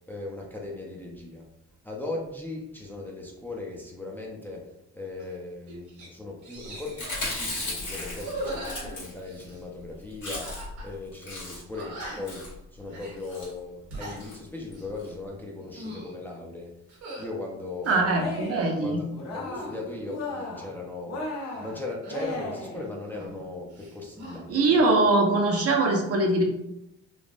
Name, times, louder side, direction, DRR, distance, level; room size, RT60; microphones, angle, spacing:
voice 1, 0.1-1.4 1.8-16.7 17.2-18.4 18.8-19.0 19.3-21.2 21.5-24.8, left 2 dB, 5° left, -2 dB, 0.5 m, -38 dB
sound 1, 5.2-5.3 5.7-6.1 6.4-7.3 8.1-9.6 10.4-10.9 11.2-11.3 11.7-12.4 12.9-13.2 13.7-14.2 14.6-14.9 15.5-16.1 16.9-17.3 17.8-18.8 19.3-20.2 22.0-23.4 23.7-24.4, right 1 dB, 75° right, 1.2 m, -40 dB
Chewing mastication, 6.9-9.5 9.8-9.9 10.1-10.8 11.1-11.8 12.2-12.6 13.2-13.5 14.2-14.4 14.7-14.8 15.0-15.1, left 2 dB, 75° left, 1.4 m, -35 dB
voice 2, 17.9-19.0 24.5-26.4, right 2 dB, 50° right, 1 dB, 0.7 m, -22 dB
Cheering, 18.1-18.7 19.1-19.8 20.1-20.7 21.1-22.8, left 2 dB, 60° left, 0.8 m, -35 dB
3.3 x 2.0 x 2.5 m, 0.84 s
cardioid pair, 90°, 30 cm